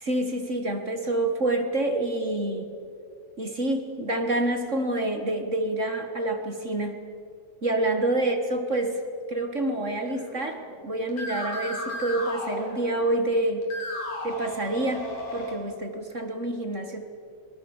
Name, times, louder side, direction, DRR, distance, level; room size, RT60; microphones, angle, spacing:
voice 1, 0.0-2.7 3.4-6.9 7.6-9.0 9.3-13.6 14.2-17.0, right 2 dB, 40° right, 5 dB, 1.1 m, -27 dB
sound 1, 10.0-10.7 11.1-13.3 13.6-15.5, left 1 dB, 80° left, 5.3 m, -35 dB
26.0 x 20.0 x 7.1 m, 2.4 s
omnidirectional pair, 3.3 m